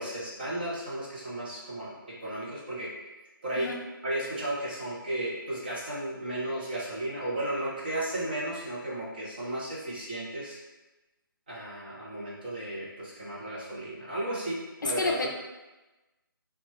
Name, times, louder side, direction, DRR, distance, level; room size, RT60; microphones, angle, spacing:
voice 1, 0.0-1.9 2.2-2.9 3.4-3.7 4.0-10.6 11.5-15.1, right 1 dB, 25° right, -7 dB, 0.6 m, -34 dB
voice 2, 14.8-15.3, left 3 dB, 55° left, 1 dB, 0.4 m, -29 dB
2.8 x 2.2 x 3.0 m, 1.1 s
hypercardioid pair, 175°, 12 cm